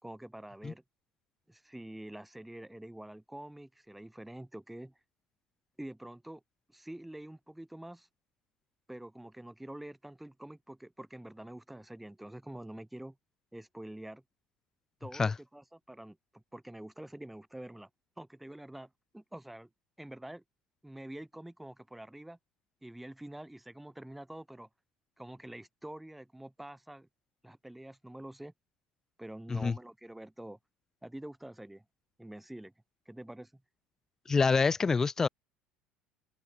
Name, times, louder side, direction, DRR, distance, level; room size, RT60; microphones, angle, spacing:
voice 1, 0.0-0.8 1.5-4.9 5.8-6.4 6.7-8.1 8.9-13.2 13.5-14.2 15.0-17.9 18.2-19.7 20.0-20.4 20.8-22.4 22.8-24.7 25.2-27.1 27.4-28.5 29.2-30.6 31.0-31.8 32.2-32.7 33.1-33.6, right 1 dB, 5° right, 6.2 m, -46 dB
voice 2, 34.3-35.3, left 4 dB, 20° left, 3.5 m, -26 dB
open air
cardioid pair, 150°, 3 cm